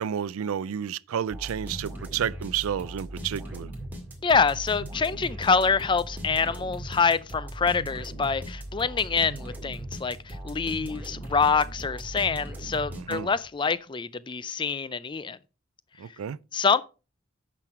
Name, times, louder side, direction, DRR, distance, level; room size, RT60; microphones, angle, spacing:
voice 1, 0.0-3.7 12.9-13.3 16.0-16.4, right 9 dB, 80° right, 0.4 m, -31 dB
sound 1, 1.3-13.5, right 1 dB, 10° right, 2.0 m, -39 dB
voice 2, 4.2-15.4 16.5-16.8, left 5 dB, 20° left, 0.4 m, -26 dB
8.9 x 6.1 x 4.8 m
head